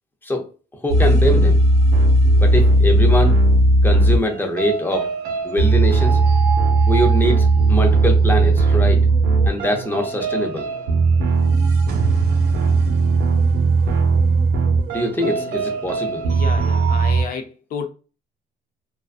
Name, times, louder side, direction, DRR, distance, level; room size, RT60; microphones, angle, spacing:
voice 1, 0.8-1.6 2.4-3.4 3.8-5.1 5.4-6.2 6.9-9.1 9.4-10.7 14.9-16.3, equal, 10° left, 0.6 m, -23 dB
sound 1, 0.9-17.2, right 2 dB, 70° right, 0.7 m, -17 dB
voice 2, 16.3-17.9, left 6 dB, 55° left, 0.6 m, -31 dB
2.5 x 2.2 x 2.4 m
cardioid pair, 110°, 17 cm